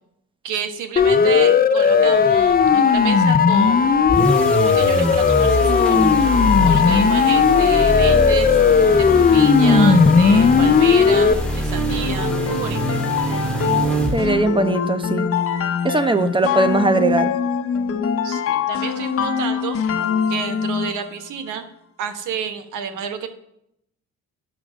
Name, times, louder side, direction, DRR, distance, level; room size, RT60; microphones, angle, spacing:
voice 1, 0.4-4.1 4.6-6.0 6.6-8.6 9.0-9.1 9.3-13.0 18.2-19.8 20.3-21.6 22.0-23.3, right 7 dB, 90° right, 9 dB, 1.2 m, -30 dB
Siren, 1.0-11.3, left 6 dB, 30° left, 0.6 m, -15 dB
sound 1, 4.1-14.5, right 1 dB, 5° left, 2.5 m, -23 dB
sound 2, 11.9-21.1, left 6 dB, 50° left, 1.1 m, -23 dB
voice 2, 14.1-15.3 15.8-17.3, right 2 dB, 15° right, 10 dB, 1.0 m, -19 dB
10.0 x 6.2 x 6.3 m, 0.76 s
cardioid pair, 90°, 30 cm